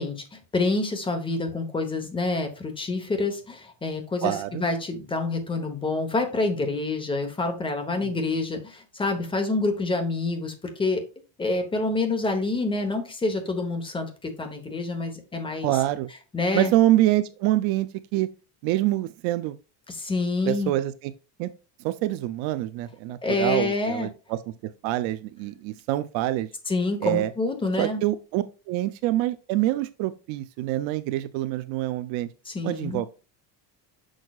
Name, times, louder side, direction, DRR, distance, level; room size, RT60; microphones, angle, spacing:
voice 1, 0.0-11.0 11.4-15.7 16.3-16.7 19.9-20.7 23.2-24.1 26.7-28.0 32.4-33.0, left 3 dB, 10° left, 0.9 m, -27 dB
voice 2, 4.2-4.7 15.6-16.1 16.5-18.3 18.6-19.6 20.5-21.1 21.4-21.5 21.8-26.5 27.0-27.3 27.8-32.3 32.6-33.1, right 15 dB, 80° right, 0.6 m, -26 dB
6.3 x 6.3 x 2.3 m
cardioid pair, 175°, 45 cm